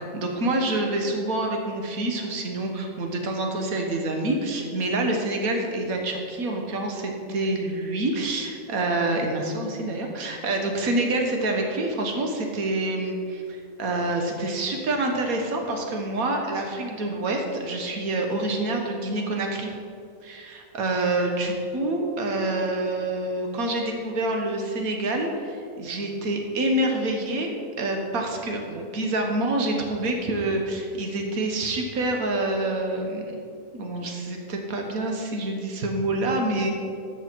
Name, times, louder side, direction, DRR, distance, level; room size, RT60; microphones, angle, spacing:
voice 1, 0.0-19.7 20.2-33.4 33.7-36.7, right 2 dB, 80° right, 2 dB, 1.7 m, -27 dB
13.0 x 8.0 x 4.6 m, 2.5 s
omnidirectional pair, 1.5 m